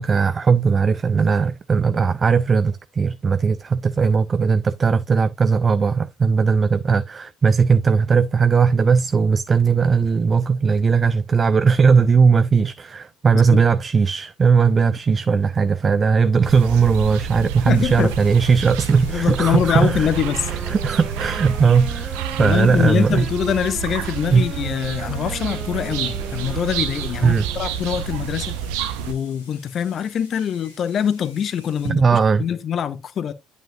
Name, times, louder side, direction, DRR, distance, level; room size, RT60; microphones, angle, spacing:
voice 1, 0.0-20.1 20.5-23.3 24.3-24.5 27.2-27.4 31.8-32.5, right 5 dB, 30° right, 0.3 m, -18 dB
sound 1, 16.4-29.1, right 8 dB, 65° right, 0.7 m, -29 dB
sound 2, 17.7-31.9, left 3 dB, 85° left, 2.2 m, -50 dB
voice 2, 17.7-18.1 19.1-20.5 22.4-28.5 29.1-33.3, left 8 dB, 40° left, 0.6 m, -24 dB
sound 3, 20.2-27.9, right 2 dB, 15° right, 1.0 m, -37 dB
8.9 x 5.1 x 2.6 m
figure-of-eight pair, 55°, 0 cm